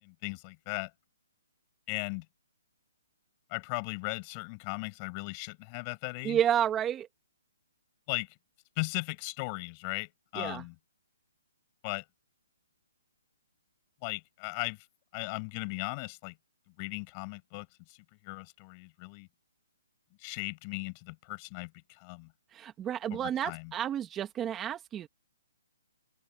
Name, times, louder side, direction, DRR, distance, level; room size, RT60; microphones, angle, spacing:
voice 1, 0.0-0.9 1.9-2.2 3.5-6.4 8.1-8.3 8.8-10.7 11.8-12.0 14.0-14.9 15.1-16.3 16.8-19.3 20.2-22.3 23.2-23.7, left 31 dB, 30° left, 5.7 m, -37 dB
voice 2, 6.2-7.1 10.3-10.6 22.5-25.1, right 10 dB, 15° right, 1.7 m, -31 dB
open air
hypercardioid pair, 155°, 0 cm